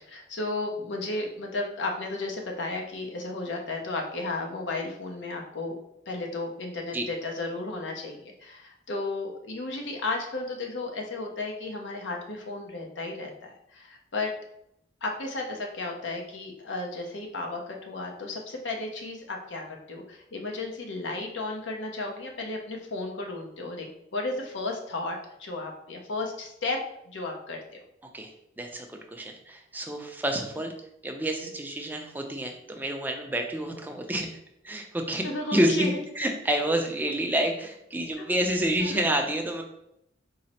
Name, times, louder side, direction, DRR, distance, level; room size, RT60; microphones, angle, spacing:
voice 1, 0.1-5.8 6.1-14.3 15.0-26.8 27.1-27.8 35.2-36.0 38.2-38.3 38.8-39.0, left 2 dB, 70° left, 1 dB, 0.7 m, -34 dB
voice 2, 28.6-30.7 31.0-34.4 34.6-35.2 35.5-39.6, right 1 dB, 10° right, 3 dB, 0.4 m, -28 dB
3.9 x 2.0 x 4.2 m, 0.78 s
head